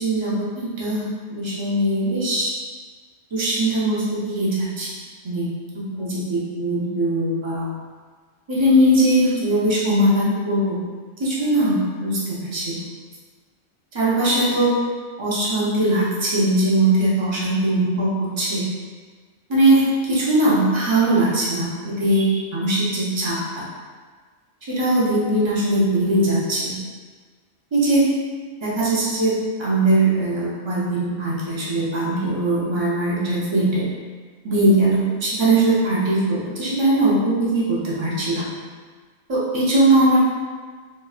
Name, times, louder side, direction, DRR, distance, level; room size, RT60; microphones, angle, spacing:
voice 1, 0.0-2.5 3.3-4.9 5.2-5.5 5.9-7.7 8.5-10.8 11.2-12.8 13.9-14.7 15.2-18.6 19.5-19.8 20.1-23.6 24.7-26.8 27.7-28.0 28.6-29.3 29.6-33.9 34.4-38.5 39.3-40.2, right 1 dB, 30° right, -7 dB, 0.6 m, -20 dB
3.1 x 2.5 x 2.3 m, 1.5 s
omnidirectional pair, 1.2 m